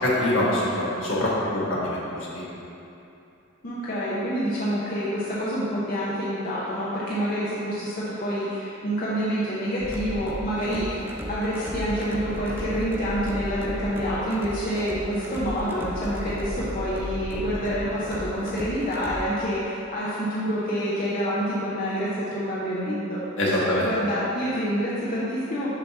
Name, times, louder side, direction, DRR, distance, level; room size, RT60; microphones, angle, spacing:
voice 1, 0.0-2.0 2.3-2.4 23.4-23.9, left 1 dB, 65° left, -6 dB, 1.4 m, -24 dB
voice 2, 3.6-11.0 11.3-23.2 23.5-23.6 23.8-25.7, equal, 45° left, -9 dB, 0.8 m, -27 dB
sound 1, 9.8-19.2, equal, 10° right, 0.4 m, -34 dB
6.9 x 2.8 x 5.8 m, 2.8 s
head